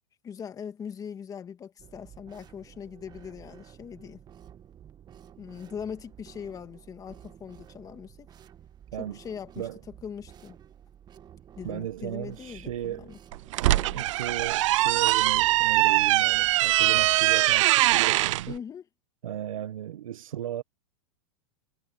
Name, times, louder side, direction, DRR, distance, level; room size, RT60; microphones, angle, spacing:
voice 1, 0.2-4.2 5.4-8.3 9.0-9.7 10.0-10.6 11.5-13.2 13.6-14.1 18.5-18.8, left 7 dB, 20° left, 2.1 m, -41 dB
sound 1, 1.8-17.4, right 9 dB, 25° right, 1.7 m, -52 dB
voice 2, 11.6-13.1 13.9-18.6 19.2-20.6, right 11 dB, 90° right, 1.4 m, -35 dB
sound 2, 13.3-18.4, right 17 dB, 65° right, 0.5 m, -22 dB
supercardioid pair, 135°, 17 cm